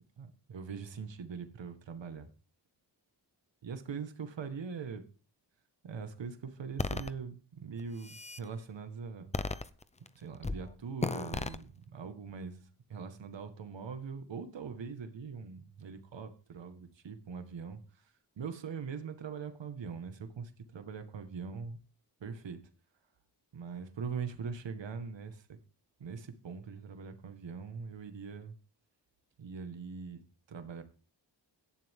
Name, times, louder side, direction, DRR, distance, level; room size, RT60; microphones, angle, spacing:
voice 1, 0.2-2.3 3.6-5.0 5.8-9.3 10.2-21.8 22.2-22.6 23.5-25.6 26.0-28.5 29.4-30.2 30.5-30.8, right 5 dB, 80° right, 1.8 m, -42 dB
sound 1, 6.8-7.1 7.8-8.4 9.3-10.1 10.4-10.6 11.0-11.6, left 3 dB, 15° left, 0.6 m, -34 dB
17.0 x 11.5 x 3.7 m
wide cardioid pair, 165°, 43 cm